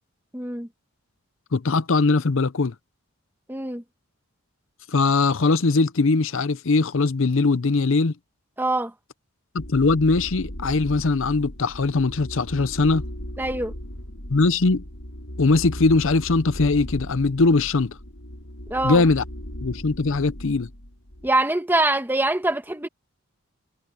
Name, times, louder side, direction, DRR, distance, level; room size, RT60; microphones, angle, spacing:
voice 1, 0.3-0.7 3.5-3.8 8.6-8.9 13.4-13.7 18.7-19.0 21.2-22.9, right 2 dB, 10° right, 1.4 m, -24 dB
voice 2, 1.5-2.7 4.9-8.1 9.5-13.0 14.3-14.8 15.4-18.0 18.8-19.2 19.6-20.7, left 3 dB, 65° left, 0.7 m, -21 dB
sound 1, 9.6-21.3, equal, 85° left, 5.9 m, -37 dB
head